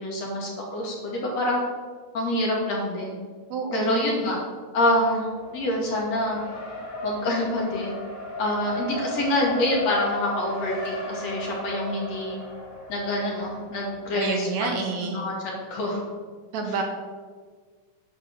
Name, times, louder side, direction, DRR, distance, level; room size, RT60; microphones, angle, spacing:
voice 1, 0.0-1.6 2.1-3.1 3.7-4.4 4.7-5.3 5.5-6.4 7.0-8.0 8.4-12.4 12.9-16.0, left 1 dB, 55° left, -2 dB, 3.4 m, -26 dB
voice 2, 3.5-4.2 14.2-15.2 16.5-16.8, right 5 dB, 65° right, 3 dB, 2.2 m, -29 dB
Race car auto racing, 5.2-14.2, left 1 dB, 30° left, 1.9 m, -36 dB
10.5 x 7.4 x 6.7 m, 1.5 s
omnidirectional pair, 3.7 m